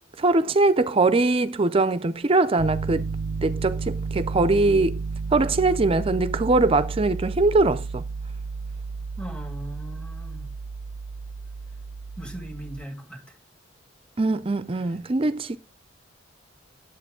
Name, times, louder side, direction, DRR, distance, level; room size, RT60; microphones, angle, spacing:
voice 1, 0.2-3.1 3.4-5.0 5.3-8.0 14.2-15.6, right 3 dB, 30° right, 0.4 m, -22 dB
Piano, 2.6-12.8, right 4 dB, 90° right, 0.4 m, -32 dB
voice 2, 9.2-10.5 12.2-13.2, right 1 dB, 5° left, 1.9 m, -38 dB
10.5 x 8.2 x 3.7 m
head